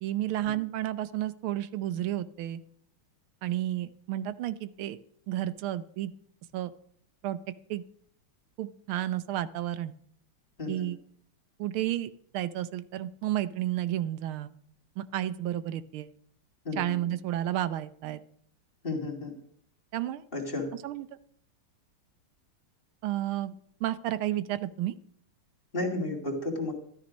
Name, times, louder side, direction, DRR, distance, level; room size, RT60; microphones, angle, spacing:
voice 1, 0.0-2.6 3.4-5.0 5.3-6.1 6.5-6.7 7.2-7.4 7.7-7.8 8.6-9.9 10.7-11.0 11.6-14.5 15.0-16.1 16.8-18.2 19.9-20.2 20.8-21.1 23.0-23.5 23.8-24.9, right 13 dB, 80° right, 13 dB, 1.6 m, -31 dB
voice 2, 18.8-19.3 20.3-20.7 25.7-26.7, left 2 dB, 25° left, 2 dB, 2.6 m, -32 dB
13.5 x 12.0 x 5.2 m, 0.65 s
omnidirectional pair, 2.3 m